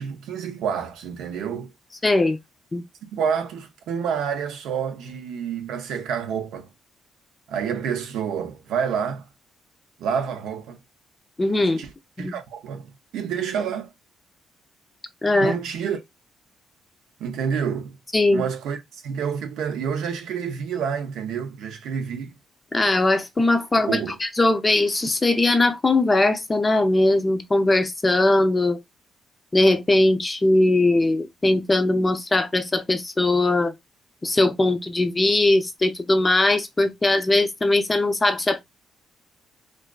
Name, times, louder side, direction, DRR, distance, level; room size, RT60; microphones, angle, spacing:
voice 1, 0.0-1.7 3.1-6.7 7.5-9.3 10.0-10.8 11.6-11.9 12.2-13.9 15.4-16.0 17.2-18.0 18.3-22.3 23.9-24.2, right 7 dB, 85° right, 0.5 m, -28 dB
voice 2, 2.0-2.4 2.7-2.8 11.4-11.8 12.2-12.3 15.2-15.6 18.1-18.4 22.7-28.8 29.5-33.7 34.2-38.6, left 2 dB, 20° left, 0.4 m, -20 dB
2.5 x 2.3 x 2.2 m
cardioid pair, 90°, 0 cm